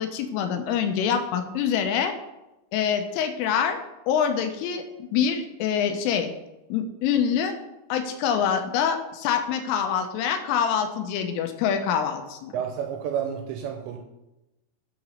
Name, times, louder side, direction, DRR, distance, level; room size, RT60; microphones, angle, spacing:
voice 1, 0.0-2.1 2.7-3.8 4.1-6.3 6.7-7.6 7.9-12.6, left 8 dB, 80° left, 6 dB, 3.3 m, -25 dB
voice 2, 12.5-14.0, right 8 dB, 85° right, 4 dB, 2.6 m, -30 dB
10.0 x 4.1 x 6.3 m, 0.97 s
omnidirectional pair, 5.8 m